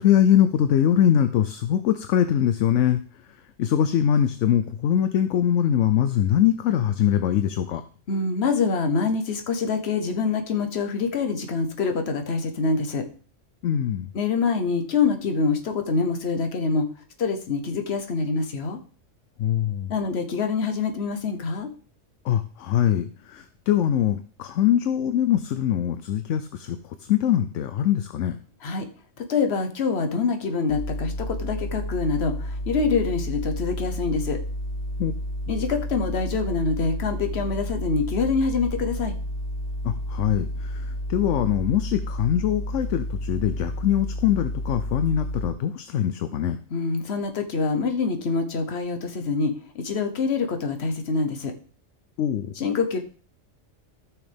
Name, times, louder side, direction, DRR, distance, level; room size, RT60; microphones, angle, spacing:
voice 1, 0.0-3.0 3.6-7.8 13.6-14.1 19.4-19.9 22.2-26.8 27.1-28.4 35.0-35.1 39.8-46.6 52.2-52.5, left 10 dB, 75° left, 11 dB, 0.9 m, -22 dB
voice 2, 8.1-13.1 14.1-16.9 17.2-18.8 19.9-21.7 28.6-28.9 29.2-34.4 35.5-39.1 46.7-51.5 52.6-53.0, left 4 dB, 60° left, 6 dB, 1.2 m, -25 dB
sound 1, 30.7-45.5, equal, 35° left, 1.3 m, -31 dB
14.0 x 6.2 x 3.4 m, 0.42 s
omnidirectional pair, 1.3 m